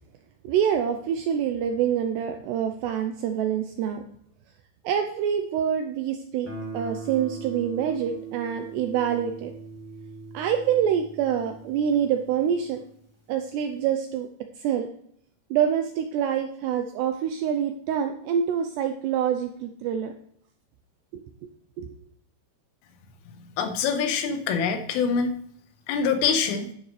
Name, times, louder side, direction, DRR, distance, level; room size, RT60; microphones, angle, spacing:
voice 1, 0.4-4.0 4.8-9.5 10.3-12.8 13.3-14.3 14.6-14.9 15.5-20.1 21.1-21.5 21.8-21.9, right 8 dB, 85° right, 6 dB, 2.4 m, -26 dB
Guitar, 6.4-13.2, right 4 dB, 5° right, 1.1 m, -41 dB
voice 2, 23.6-25.3 25.9-26.7, left 6 dB, 90° left, 6 dB, 3.8 m, -24 dB
12.0 x 10.5 x 3.2 m, 0.66 s
omnidirectional pair, 5.6 m